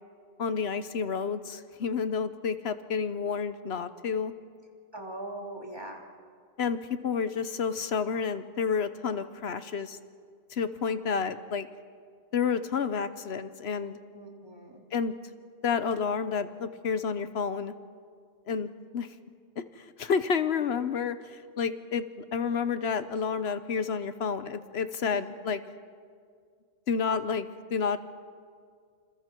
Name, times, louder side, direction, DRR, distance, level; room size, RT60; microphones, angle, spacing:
voice 1, 0.4-4.3 6.6-10.0 10.5-11.7 12.3-14.0 14.9-15.1 15.6-17.7 18.5-18.7 18.9-19.1 19.6-25.6 26.9-28.0, left 6 dB, 75° left, 12 dB, 1.1 m, -30 dB
voice 2, 4.9-6.1 14.1-14.8 25.0-25.3, right 1 dB, 25° right, 0 dB, 2.8 m, -41 dB
27.5 x 27.5 x 4.5 m, 2.1 s
omnidirectional pair, 1.1 m